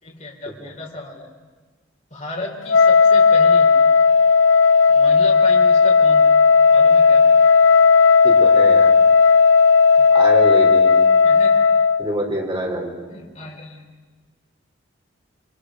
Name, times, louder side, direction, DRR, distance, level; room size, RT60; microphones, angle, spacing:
voice 1, 0.0-1.3 2.1-3.7 4.9-6.2 6.7-7.2 11.2-11.6 13.1-13.8, left 2 dB, 35° left, -1 dB, 4.1 m, -33 dB
Wind instrument woodwind instrument, 2.7-12.0, left 5 dB, 70° left, 0.7 m, -13 dB
voice 2, 8.2-8.9 10.1-10.9 12.0-13.1, right 1 dB, 25° right, 1 dB, 4.0 m, -25 dB
29.0 x 23.5 x 6.4 m, 1.4 s
head